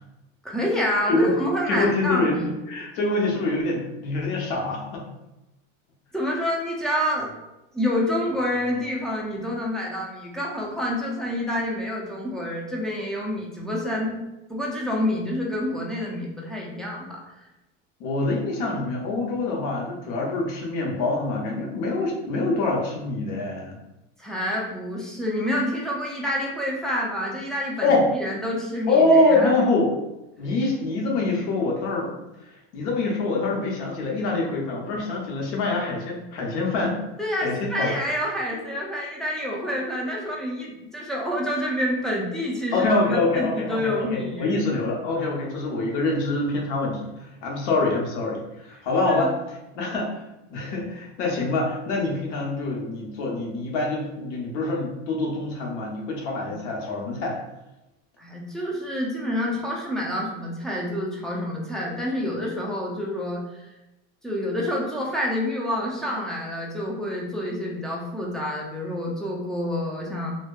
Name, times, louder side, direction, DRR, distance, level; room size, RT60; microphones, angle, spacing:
voice 1, 0.4-2.4 6.1-7.3 7.7-17.2 24.2-29.5 37.2-44.5 49.1-49.3 58.2-63.6 64.2-70.4, left 1 dB, ahead, -4 dB, 0.4 m, -28 dB
voice 2, 1.7-2.4 2.7-5.1 18.0-23.8 27.8-28.1 28.9-29.9 30.4-32.1 32.7-37.0 37.4-37.9 42.7-50.2 50.5-57.4, left 2 dB, 85° left, -1 dB, 0.8 m, -25 dB
2.6 x 2.1 x 2.3 m, 0.95 s
supercardioid pair, 115°, 34 cm